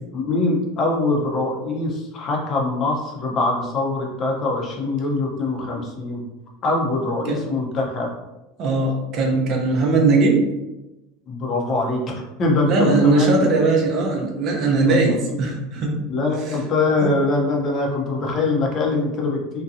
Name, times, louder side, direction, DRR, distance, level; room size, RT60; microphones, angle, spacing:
voice 1, 0.1-6.2 6.6-8.1 11.3-13.5 14.9-15.0 16.1-19.6, left 2 dB, 35° left, -1 dB, 0.7 m, -23 dB
voice 2, 8.6-10.5 12.7-16.1 16.5-16.6 17.0-17.1, right 3 dB, 45° right, 1 dB, 0.6 m, -19 dB
2.6 x 2.2 x 2.6 m, 0.98 s
supercardioid pair, 135°, 0 cm